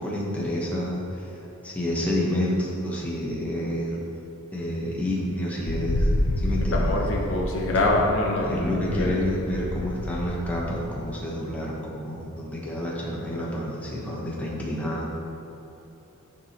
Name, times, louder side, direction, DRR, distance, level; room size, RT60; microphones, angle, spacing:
voice 1, 0.0-1.4 1.6-4.0 4.5-6.1 6.4-6.9 8.4-15.1, left 1 dB, 5° left, -5 dB, 1.0 m, -29 dB
Wind, 5.6-11.1, left 1 dB, 80° left, 0.5 m, -28 dB
voice 2, 6.7-9.1, left 2 dB, 60° left, -1 dB, 0.9 m, -25 dB
10.5 x 4.6 x 2.9 m, 2.9 s
head